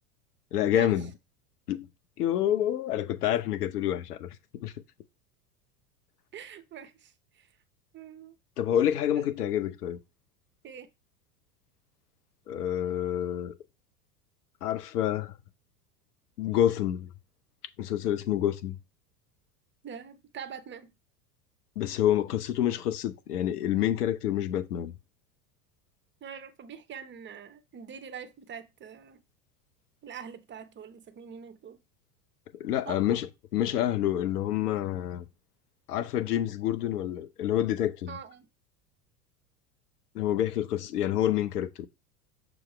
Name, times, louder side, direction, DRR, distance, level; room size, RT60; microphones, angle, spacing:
voice 1, 0.5-1.1 1.7-1.9 2.2-4.3 4.6-4.7 8.6-10.0 12.5-13.5 14.6-15.3 16.4-17.1 17.8-18.8 21.8-24.9 32.6-35.2 35.9-38.1 40.1-41.9, left 11 dB, 75° left, 0.8 m, -28 dB
voice 2, 6.3-7.5 7.9-8.3 10.6-10.9 19.8-20.9 26.2-29.2 30.0-31.8 32.9-33.0 38.1-38.5, right 7 dB, 25° right, 0.8 m, -44 dB
6.4 x 3.0 x 4.9 m
hypercardioid pair, 90°, 46 cm